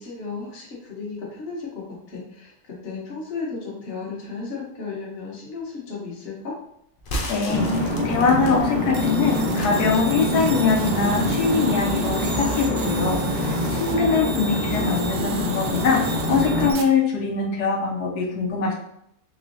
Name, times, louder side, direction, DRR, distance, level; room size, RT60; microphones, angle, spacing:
voice 1, 0.0-6.6 14.0-14.6, left 4 dB, 45° left, -3 dB, 1.1 m, -34 dB
sound 1, 7.0-11.0 11.4-12.7, equal, 65° left, 0.5 m, -35 dB
voice 2, 7.2-18.7, left 5 dB, 85° left, 0 dB, 1.2 m, -23 dB
sound 2, 7.5-16.7, left 1 dB, 15° left, 0.5 m, -25 dB
sound 3, 8.9-16.8, right 4 dB, 70° right, 0.8 m, -36 dB
3.6 x 3.1 x 2.6 m, 0.74 s
omnidirectional pair, 1.7 m